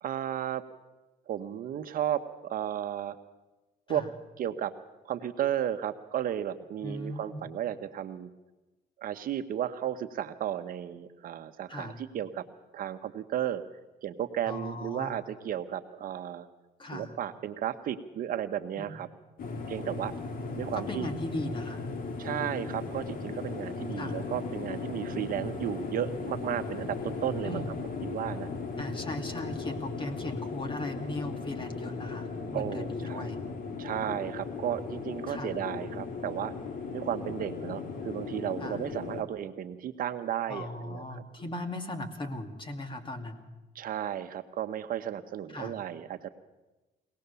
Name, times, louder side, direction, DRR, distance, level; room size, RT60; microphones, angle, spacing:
voice 1, 0.0-0.6 1.3-3.2 3.9-4.0 4.4-4.7 5.0-8.3 9.0-12.4 12.7-13.6 14.0-16.5 16.9-19.1 19.7-20.1 20.6-21.1 22.2-27.6 28.0-28.5 32.5-33.3 33.8-36.5 36.9-41.2 43.7-46.3, right 10 dB, 55° right, 8 dB, 1.1 m, -34 dB
voice 2, 6.8-7.4 11.7-12.0 14.4-15.2 16.8-17.1 18.8-18.9 20.7-21.8 24.0-24.2 27.4-27.7 28.8-33.4 35.3-35.6 38.6-38.8 40.5-43.5 45.5-45.8, left 1 dB, 30° left, 6 dB, 2.5 m, -38 dB
sound 1, 19.4-39.2, left 4 dB, 55° left, 2.2 m, -37 dB
23.0 x 18.5 x 6.9 m, 1.1 s
cardioid pair, 110°, 17 cm